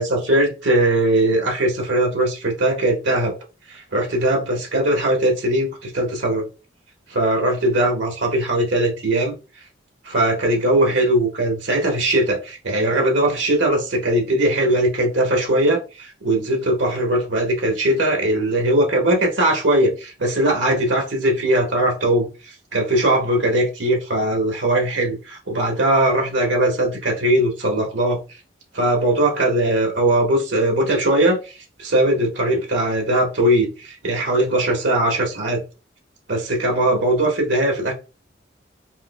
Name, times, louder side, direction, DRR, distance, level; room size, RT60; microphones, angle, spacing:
voice 1, 0.0-3.3 3.7-6.5 7.1-9.3 10.0-22.3 22.7-28.2 28.7-31.4 31.8-35.6 36.3-37.9, right 1 dB, 85° right, 1.3 m, -20 dB
4.6 x 2.2 x 2.2 m
head